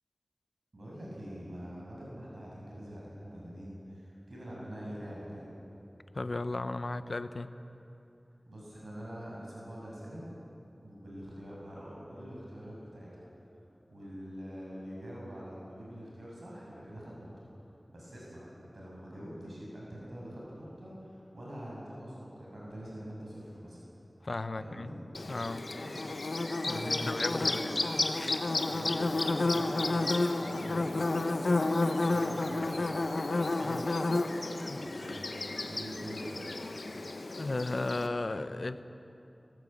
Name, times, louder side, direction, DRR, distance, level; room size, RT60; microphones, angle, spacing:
voice 1, 0.7-5.5 8.5-10.3 10.8-13.3 13.9-17.5 17.9-23.8 24.6-25.0 25.8-26.1 26.6-27.7 28.7-31.7 32.1-32.9 34.7-35.3 35.7-36.4, equal, 70° right, -5 dB, 6.9 m, -44 dB
voice 2, 6.1-7.5 24.2-24.9 25.3-25.7 26.7-27.6 33.4-34.0 34.7-34.9 37.4-38.8, left 2 dB, 65° left, 11 dB, 0.9 m, -35 dB
Bird / Buzz, 25.1-38.1, left 2 dB, 80° left, 1.3 m, -31 dB
20.0 x 17.5 x 8.8 m, 2.9 s
wide cardioid pair, 60°, 0 cm